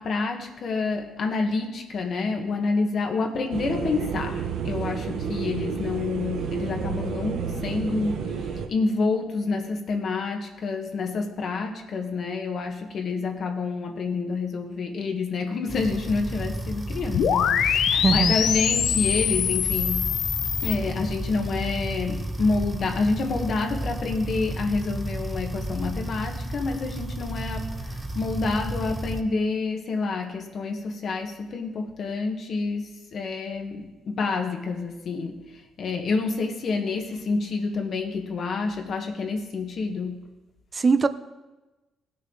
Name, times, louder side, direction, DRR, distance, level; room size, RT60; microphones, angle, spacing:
voice 1, 0.0-20.1 20.6-40.3, left 4 dB, 60° left, 3 dB, 1.4 m, -28 dB
sound 1, 3.5-8.7, right 6 dB, 75° right, 0.8 m, -30 dB
sound 2, 15.7-29.2, right 1 dB, 15° right, 1.0 m, -32 dB
sound 3, 17.1-20.7, left 9 dB, 75° left, 0.5 m, -24 dB
voice 2, 17.9-18.4 40.7-41.1, right 4 dB, 35° right, 13 dB, 0.6 m, -21 dB
16.5 x 6.5 x 3.9 m, 1.1 s
cardioid pair, 90°, 0 cm